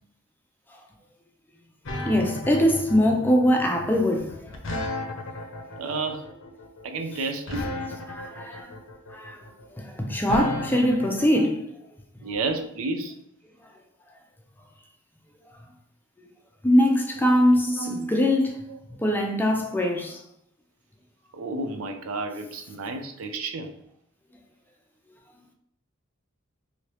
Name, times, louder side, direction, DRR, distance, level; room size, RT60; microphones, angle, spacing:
sound 1, 1.9-11.4, left 2 dB, 65° left, 0.6 m, -34 dB
voice 1, 2.0-4.5 8.1-8.7 9.1-11.7 16.6-18.7 19.0-20.2, equal, 10° left, 0.4 m, -22 dB
voice 2, 5.8-6.2 6.8-7.7 12.2-13.2 17.2-17.3 17.7-18.0 21.3-23.7, right 3 dB, 80° right, 0.4 m, -31 dB
3.1 x 2.7 x 3.0 m
head